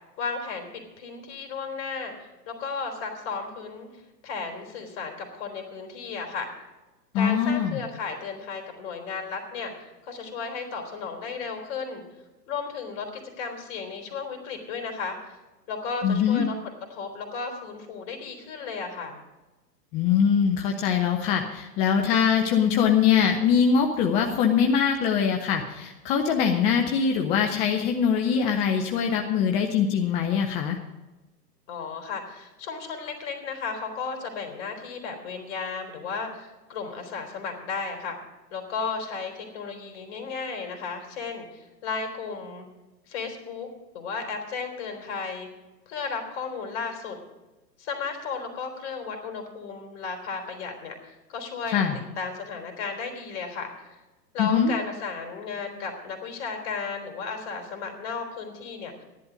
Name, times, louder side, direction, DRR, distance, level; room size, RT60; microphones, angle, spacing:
voice 1, 0.2-3.9 4.2-6.5 7.1-12.0 12.5-15.2 15.7-16.5 16.9-19.2 31.7-38.2 38.5-42.7 43.1-43.7 43.9-45.5 45.9-47.2 47.8-50.9 51.3-51.9 52.2-54.0 54.3-58.9, left 5 dB, 45° left, 5 dB, 3.6 m, -34 dB
voice 2, 7.1-7.8 16.0-16.4 19.9-30.8 51.7-52.0 54.4-54.7, left 7 dB, 15° left, 3 dB, 0.5 m, -22 dB
14.0 x 11.0 x 5.1 m, 1.1 s
hypercardioid pair, 125°, 49 cm